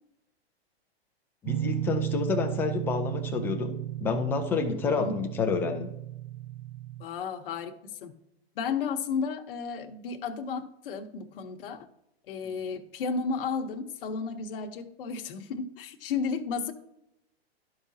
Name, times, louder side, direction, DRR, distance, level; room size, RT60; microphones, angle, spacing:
voice 1, 1.4-5.9, left 5 dB, 5° left, 5 dB, 0.3 m, -29 dB
sound 1, 1.5-7.0, right 13 dB, 80° right, 0.5 m, -34 dB
voice 2, 4.8-5.2 7.0-8.1 8.6-11.9 12.3-16.7, left 5 dB, 55° left, 5 dB, 1.0 m, -33 dB
12.5 x 4.9 x 2.7 m, 0.83 s
hypercardioid pair, 140°, 32 cm